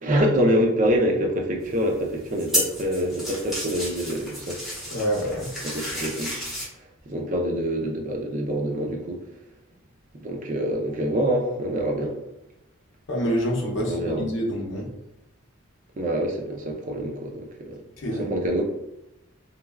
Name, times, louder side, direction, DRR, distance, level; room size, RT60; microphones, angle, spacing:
voice 1, 0.0-4.6 5.6-6.4 7.1-9.2 10.2-12.2 13.9-14.3 16.0-17.8 18.1-18.6, equal, 35° right, 1 dB, 0.4 m, -25 dB
sound 1, 1.6-6.7, equal, ahead, 0.7 m, -32 dB
voice 2, 4.9-5.5 13.1-14.9 18.0-18.3, equal, 55° left, -3 dB, 0.7 m, -27 dB
3.2 x 2.2 x 2.2 m, 0.94 s
head